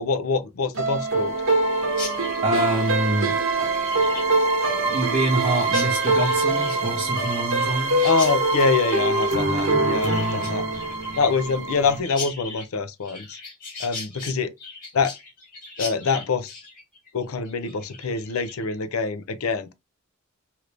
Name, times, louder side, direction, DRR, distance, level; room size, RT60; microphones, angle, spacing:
voice 1, 0.0-1.3 8.0-10.6 11.2-13.4 13.8-14.5 14.9-15.1 15.8-16.5 17.1-19.7, left 4 dB, 85° left, 0.5 m, -25 dB
sound 1, 0.7-12.0, right 2 dB, 65° right, 1.0 m, -23 dB
Chirp tweet, 1.9-18.8, left 4 dB, 40° left, 1.6 m, -39 dB
voice 2, 2.4-3.4 4.1-4.2 4.8-8.1, right 1 dB, 35° right, 0.7 m, -25 dB
2.9 x 2.5 x 3.3 m
head